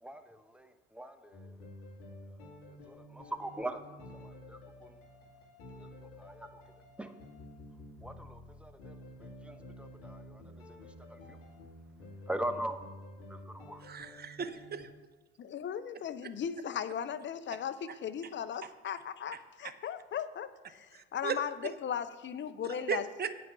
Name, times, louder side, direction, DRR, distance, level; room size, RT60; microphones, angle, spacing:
voice 1, 0.0-1.6 2.3-2.5 2.9-5.0 5.8-6.6 7.0-7.1 8.0-10.4 11.1-11.4 12.3-12.8 13.3-13.8, right 1 dB, 5° right, 8 dB, 1.0 m, -42 dB
sound 1, 1.3-14.9, left 1 dB, 70° left, 2.3 m, -51 dB
voice 2, 13.8-14.9 20.9-21.4 22.7-23.3, right 7 dB, 30° right, 11 dB, 0.9 m, -36 dB
voice 3, 15.4-23.1, left 8 dB, 35° left, 11 dB, 0.8 m, -37 dB
8.7 x 6.1 x 6.9 m, 1.3 s
hypercardioid pair, 65°, 31 cm